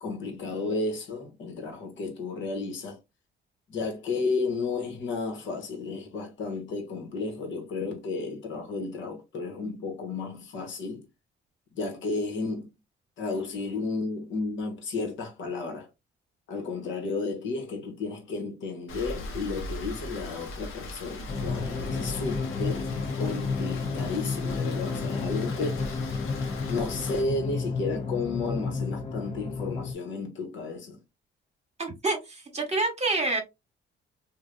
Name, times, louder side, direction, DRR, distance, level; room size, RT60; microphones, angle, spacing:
voice 1, 0.0-3.0 3.7-11.1 11.7-12.7 13.2-15.9 16.5-22.9 23.2-26.1 26.7-31.0, left 3 dB, 70° left, 1.3 m, -33 dB
Rain, 18.9-27.2, left 2 dB, 90° left, 1.0 m, -39 dB
sound 1, 21.3-29.9, left 4 dB, 30° left, 0.6 m, -31 dB
voice 2, 31.8-33.4, right 3 dB, 35° right, 1.2 m, -27 dB
3.3 x 2.5 x 2.5 m
cardioid pair, 90°, 20 cm